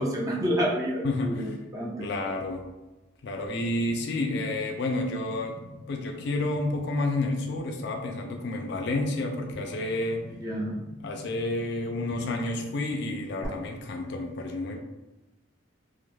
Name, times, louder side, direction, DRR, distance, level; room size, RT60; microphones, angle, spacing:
voice 1, 0.0-2.1 10.4-10.8, equal, 15° right, -3 dB, 0.4 m, -29 dB
voice 2, 1.0-1.6 2.0-2.7 3.2-5.6 5.9-10.2 11.0-14.8, left 2 dB, 55° left, 3 dB, 0.3 m, -30 dB
sound 1, 3.5-13.5, left 1 dB, 60° right, 0.8 m, -47 dB
2.2 x 2.1 x 3.0 m, 1.1 s
head